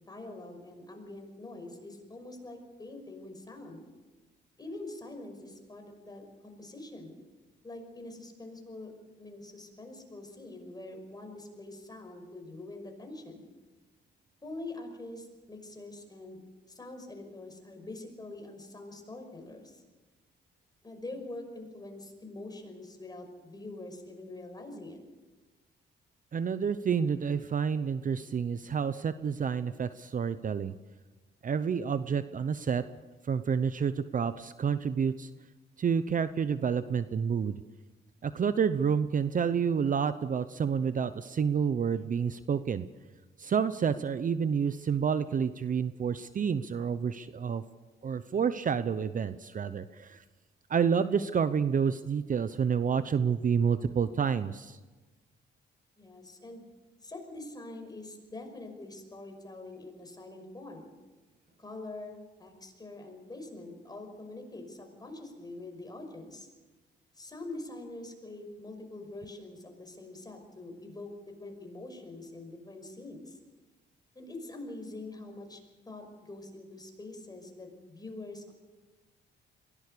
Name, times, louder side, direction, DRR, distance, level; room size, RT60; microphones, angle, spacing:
voice 1, 0.1-3.8 4.6-7.2 7.6-8.9 9.2-13.5 14.4-16.4 16.7-19.8 20.8-25.0 56.0-56.6 57.0-60.9 61.6-66.5 67.1-71.1 71.4-73.4 74.1-75.6 75.9-78.5, left 2 dB, 20° left, 4 dB, 5.7 m, -44 dB
voice 2, 26.3-30.7 31.4-32.8 33.3-35.3 35.8-37.5 38.2-42.9 43.4-47.6 48.0-50.2 50.7-54.8, right 6 dB, 40° right, 13 dB, 0.8 m, -29 dB
22.5 x 17.5 x 6.9 m, 1.2 s
cardioid pair, 90°, 20 cm